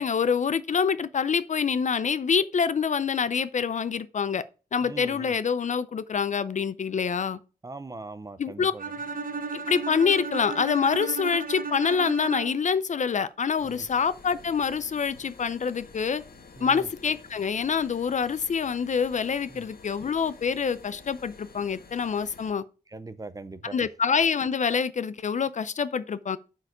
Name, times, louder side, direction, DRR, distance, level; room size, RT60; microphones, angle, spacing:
voice 1, 0.0-4.4 4.7-7.4 8.4-8.7 9.5-16.2 16.6-22.6 23.6-26.4, left 6 dB, 55° left, 0.4 m, -26 dB
voice 2, 4.8-5.3 7.6-8.9 13.6-13.9 16.6-16.9 19.5-19.6 22.9-23.7, right 3 dB, 25° right, 0.5 m, -41 dB
Bowed string instrument, 8.8-12.8, right 4 dB, 65° right, 1.0 m, -34 dB
sound 1, 13.6-22.5, left 4 dB, 80° left, 1.3 m, -50 dB
8.0 x 4.6 x 4.9 m
wide cardioid pair, 155°, 15 cm